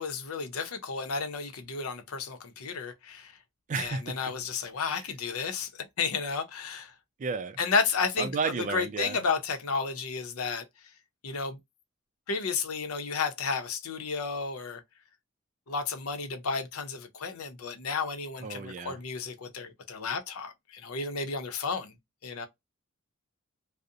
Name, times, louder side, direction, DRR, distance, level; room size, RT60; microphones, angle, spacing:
voice 1, 0.0-3.4 3.8-6.9 7.6-8.3 8.7-10.6 11.2-11.6 12.3-14.8 15.7-21.9 22.2-22.5, left 5 dB, 90° left, 0.6 m, -32 dB
voice 2, 3.7-4.2 7.2-7.6 8.2-9.2 18.4-19.0, right 4 dB, 35° right, 0.3 m, -32 dB
2.5 x 2.0 x 2.6 m
head